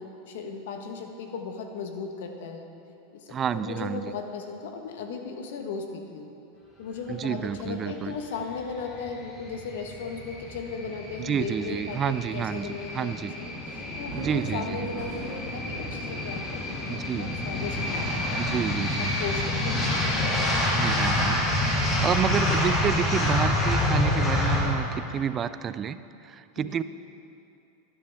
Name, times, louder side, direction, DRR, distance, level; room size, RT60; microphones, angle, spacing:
voice 1, 0.0-2.7 3.1-6.3 6.8-18.4 19.0-20.1 26.6-26.7, left 5 dB, 75° left, 4 dB, 1.2 m, -36 dB
voice 2, 3.3-4.1 7.1-8.1 11.2-13.3 14.1-14.9 16.9-17.3 18.4-19.1 20.7-21.4 21.7-26.8, right 8 dB, 30° right, 14 dB, 0.3 m, -30 dB
sound 1, 8.9-24.6, left 1 dB, 30° left, 2.7 m, -28 dB
sound 2, 13.7-20.6, right 5 dB, 50° right, 1.1 m, -43 dB
12.5 x 9.9 x 3.5 m, 2.7 s
supercardioid pair, 120°, 0 cm